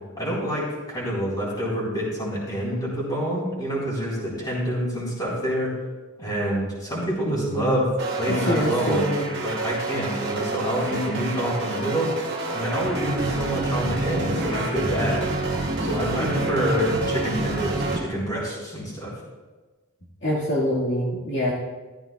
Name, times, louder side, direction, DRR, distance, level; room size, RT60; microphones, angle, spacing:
voice 1, 0.2-5.7 6.2-7.9 8.2-9.1 9.4-12.1 12.5-15.3 15.8-19.1, equal, 20° left, -6 dB, 3.7 m, -27 dB
voice 2, 7.3-7.8 8.3-9.3 16.2-17.1 20.2-21.5, equal, 55° left, -6 dB, 1.7 m, -26 dB
sound 1, 8.0-18.0, right 2 dB, 50° right, 2.1 m, -28 dB
14.0 x 13.5 x 2.3 m, 1.3 s
head